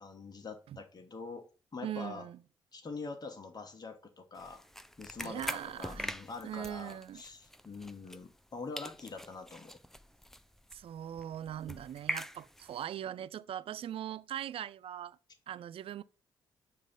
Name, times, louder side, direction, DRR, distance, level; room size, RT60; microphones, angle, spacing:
voice 1, 0.0-1.4 1.7-2.2 2.7-4.6 5.0-9.8, left 4 dB, 35° left, 1.1 m, -44 dB
voice 2, 1.8-2.4 5.2-6.1 6.4-7.2 10.7-15.2 15.5-16.0, right 10 dB, 50° right, 0.4 m, -40 dB
sound 1, 4.4-8.5 8.8-12.9, equal, 5° left, 0.5 m, -44 dB
7.4 x 2.7 x 5.2 m
hypercardioid pair, 45°, 12 cm